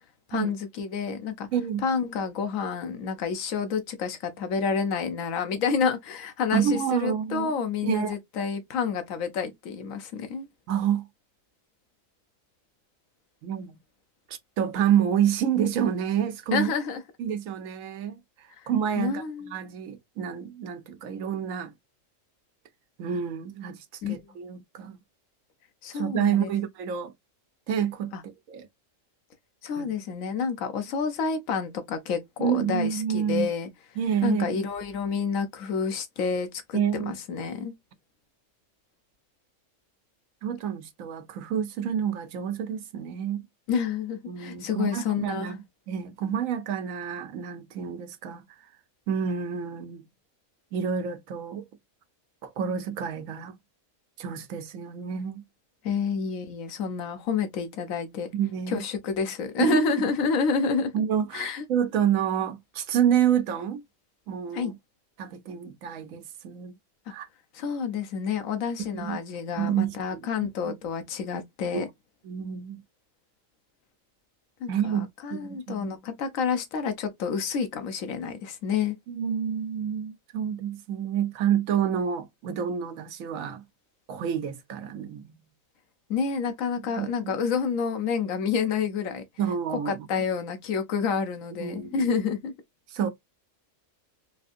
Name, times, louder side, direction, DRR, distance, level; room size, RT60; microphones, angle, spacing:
voice 1, 0.3-1.5 1.8-10.5 16.5-17.0 18.6-18.7 19.0-19.5 24.0-24.3 25.8-26.5 28.1-28.2 29.6-33.7 34.2-37.7 43.7-45.5 55.8-58.3 58.7-60.9 61.3-61.6 64.5-64.7 67.1-67.2 67.5-71.9 74.6-79.0 86.1-89.2 89.7-92.5, left 6 dB, 85° left, 1.1 m, -29 dB
voice 2, 1.5-1.8 6.5-7.5 7.8-8.1 10.7-11.1 13.4-13.8 14.3-16.7 17.2-21.7 23.0-25.0 25.9-27.1 27.7-28.7 29.8-29.9 32.4-33.5 34.0-34.6 36.7-37.1 40.4-43.4 44.3-45.6 45.9-48.4 49.1-50.0 50.7-51.6 52.4-53.5 54.2-55.4 58.3-58.8 59.6-60.0 60.9-63.8 64.3-64.8 65.2-66.7 67.1-67.3 68.9-69.2 69.6-70.2 70.6-70.7 71.7-71.8 72.2-72.8 74.7-75.9 79.1-83.6 84.1-85.3 87.0-87.4 89.4-90.1 91.6-92.1 92.9-93.1, right 8 dB, 90° right, 1.1 m, -28 dB
3.6 x 2.5 x 2.5 m
omnidirectional pair, 1.4 m